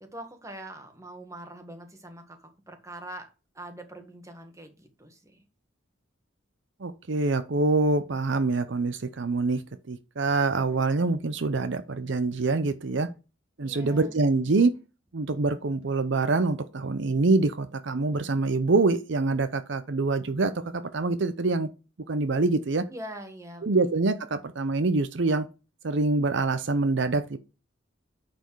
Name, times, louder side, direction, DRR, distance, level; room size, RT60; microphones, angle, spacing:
voice 1, 0.0-3.3 3.5-5.4 13.6-14.2 22.9-23.9, right 1 dB, 15° right, 1.7 m, -43 dB
voice 2, 6.8-9.6 9.9-13.1 13.6-14.7 15.1-21.7 22.1-22.9 23.6-25.5 25.8-27.4, right 3 dB, 70° right, 0.7 m, -25 dB
9.3 x 4.5 x 4.6 m
head